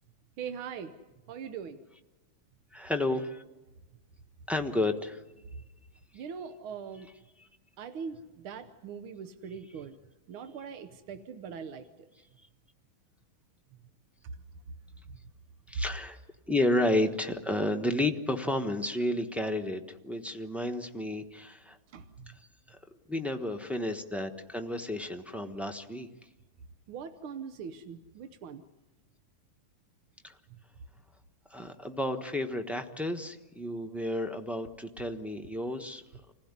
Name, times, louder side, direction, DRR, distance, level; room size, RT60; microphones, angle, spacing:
voice 1, 0.4-0.9 1.3-1.8 6.1-7.1 7.8-10.0 10.3-11.9 21.9-22.4 26.9-28.6, right 6 dB, 80° right, 9 dB, 1.8 m, -41 dB
voice 2, 2.7-3.4 4.5-5.2 7.4-7.5 15.7-16.2 16.5-21.8 23.1-26.1 30.2-30.3 31.5-36.0, left 1 dB, ahead, 3 dB, 0.7 m, -31 dB
27.0 x 16.0 x 9.7 m, 1.1 s
omnidirectional pair, 2.3 m